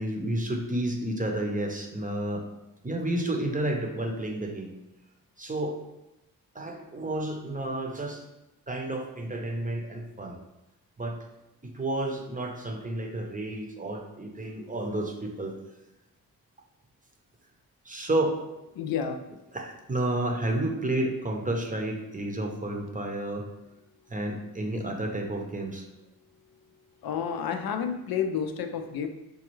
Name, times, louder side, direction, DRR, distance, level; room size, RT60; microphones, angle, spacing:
voice 1, 0.0-2.4 2.8-4.7 5.4-5.8 6.5-8.2 8.7-10.4 11.0-11.2 11.6-15.5 17.8-18.4 19.5-23.4 24.1-25.8, right 1 dB, 20° right, 1 dB, 0.7 m, -31 dB
voice 2, 18.8-19.2 27.0-29.1, left 7 dB, 75° left, 6 dB, 0.5 m, -30 dB
5.2 x 2.3 x 3.0 m, 0.94 s
cardioid pair, 75°, 36 cm